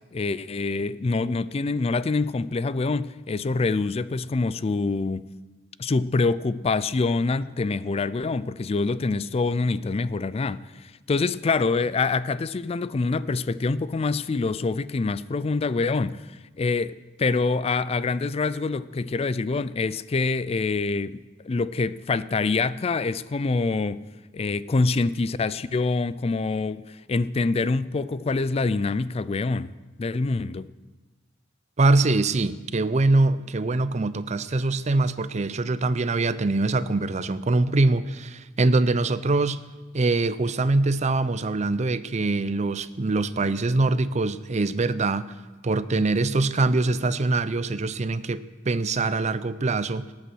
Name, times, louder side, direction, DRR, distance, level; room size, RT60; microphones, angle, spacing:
voice 1, 0.1-5.3 5.8-16.3 16.6-24.0 24.3-29.7 30.0-30.7, left 3 dB, 35° left, 0.4 m, -25 dB
voice 2, 31.8-39.6 39.9-45.2 45.6-50.0, right 2 dB, 40° right, 0.6 m, -23 dB
18.0 x 8.4 x 6.2 m
head